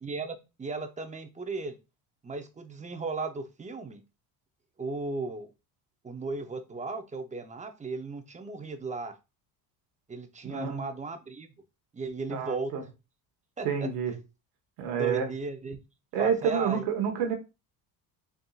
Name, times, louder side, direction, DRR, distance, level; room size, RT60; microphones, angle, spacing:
voice 1, 0.0-1.8 2.2-4.0 4.8-5.5 6.0-9.1 10.1-11.5 11.9-12.7 13.6-13.7 14.9-15.8 16.2-16.8, right 3 dB, 15° right, 0.7 m, -36 dB
voice 2, 10.4-10.8 12.3-12.8 13.6-14.1 14.8-15.3 16.1-17.3, right 7 dB, 85° right, 1.2 m, -28 dB
4.0 x 3.6 x 2.3 m
supercardioid pair, 95°, 43 cm